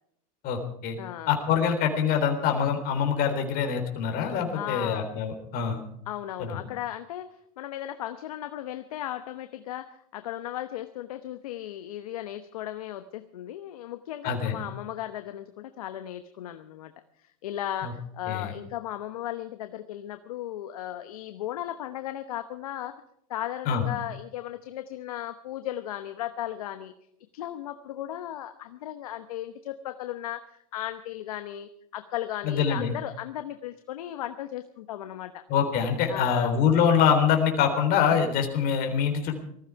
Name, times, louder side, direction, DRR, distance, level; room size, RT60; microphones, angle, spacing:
voice 1, 0.4-1.0 1.3-5.8 6.5-6.6 14.2-14.6 17.8-17.9 18.3-18.5 23.7-23.8 32.4-32.9 35.5-39.4, left 7 dB, 55° left, 5 dB, 3.7 m, -24 dB
voice 2, 1.0-1.4 4.5-5.2 6.1-7.3 7.6-16.9 17.2-22.9 23.3-26.9 27.3-35.4 36.1-36.5, left 12 dB, 85° left, 9 dB, 1.0 m, -36 dB
19.0 x 14.5 x 4.7 m, 0.74 s
hypercardioid pair, 105°, 18 cm